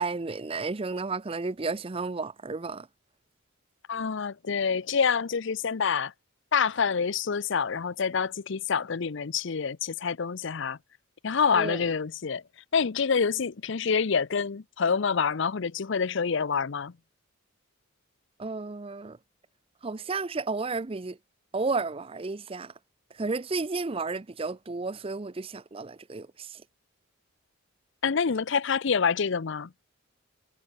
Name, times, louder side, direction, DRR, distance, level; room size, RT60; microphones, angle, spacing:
voice 1, 0.0-2.9 11.5-11.9 18.4-19.2 19.8-21.2 21.5-22.7 23.1-26.6, right 3 dB, 25° right, 0.6 m, -32 dB
voice 2, 3.9-6.1 6.5-10.8 11.2-12.4 12.7-16.9 28.0-29.7, left 6 dB, 60° left, 0.6 m, -27 dB
head